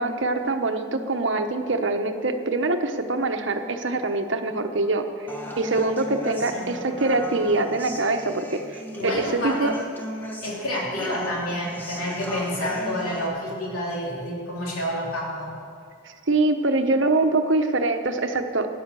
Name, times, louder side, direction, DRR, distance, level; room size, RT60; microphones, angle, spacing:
voice 1, 0.0-5.3 5.6-9.7 16.0-18.7, right 2 dB, 60° right, 6 dB, 1.0 m, -24 dB
Human voice, 5.3-13.3, equal, 10° left, 1.1 m, -36 dB
voice 2, 9.0-9.7 10.4-15.5, left 1 dB, 90° left, -3 dB, 3.2 m, -29 dB
13.5 x 9.8 x 6.9 m, 2.4 s
head